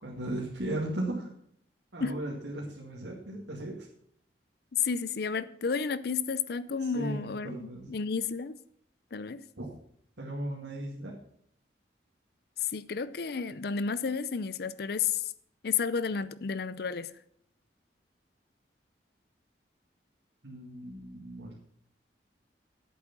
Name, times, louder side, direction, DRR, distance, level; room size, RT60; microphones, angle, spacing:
voice 1, 0.0-1.3 1.9-3.9 6.8-7.9 9.6-9.7 10.2-11.1 20.4-21.6, right 1 dB, 85° right, 2.2 m, -36 dB
voice 2, 4.7-8.6 9.1-9.4 12.7-15.2 15.6-17.1, left 6 dB, 60° left, 0.5 m, -32 dB
10.5 x 8.4 x 6.1 m
head